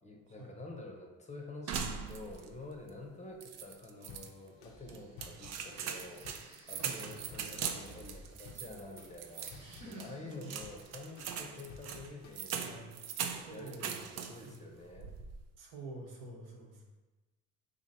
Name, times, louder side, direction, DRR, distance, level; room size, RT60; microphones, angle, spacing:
voice 1, 0.0-6.3 6.7-9.6 9.8-12.7 13.3-15.1, left 2 dB, 20° left, 1 dB, 0.7 m, -48 dB
sound 1, 1.7-2.6 2.9-3.0 3.4-4.3 4.9-14.6 14.9-15.4, right 7 dB, 50° right, 0.5 m, -41 dB
sound 2, 4.1-12.8, left 5 dB, 75° left, 0.6 m, -56 dB
Breathing, 4.5-5.5 6.1-9.0 9.3-10.4, right 1 dB, 20° right, 1.0 m, -59 dB
voice 2, 6.7-7.3 9.5-10.5 12.6-12.9 13.3-13.9 14.4-14.7 15.6-16.8, right 2 dB, 70° right, -1 dB, 1.0 m, -48 dB
2.9 x 2.6 x 4.0 m, 1.1 s
supercardioid pair, 70°, 33 cm